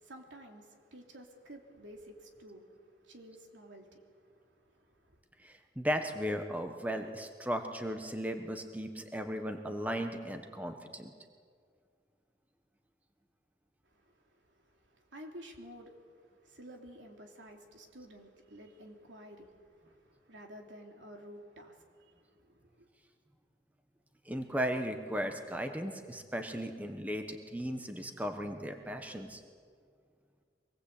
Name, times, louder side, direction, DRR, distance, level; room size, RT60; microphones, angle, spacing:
voice 1, 0.0-5.2 13.9-22.9, equal, 85° right, 3.3 m, -52 dB
voice 2, 5.4-11.1 24.3-29.4, equal, 10° right, 1.2 m, -36 dB
24.5 x 19.5 x 8.4 m
head